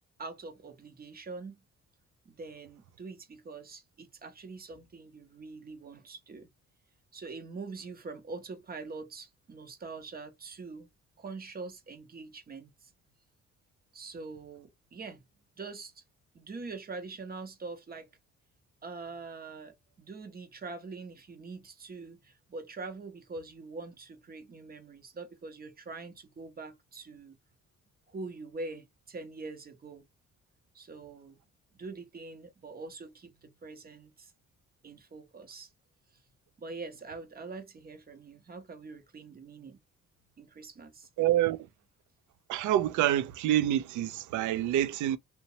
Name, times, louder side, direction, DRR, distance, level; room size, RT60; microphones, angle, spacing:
voice 1, 0.2-1.6 2.3-6.5 7.1-10.9 11.2-12.9 13.9-15.2 15.6-16.0 16.3-18.1 18.8-27.4 28.1-30.1 30.7-31.4 31.7-34.3 34.8-35.7 36.6-39.8 40.4-41.1, right 3 dB, 30° right, 0.8 m, -44 dB
voice 2, 41.2-41.7 42.5-45.2, right 12 dB, 75° right, 0.5 m, -27 dB
2.8 x 2.1 x 2.7 m
cardioid pair, 90°, 30 cm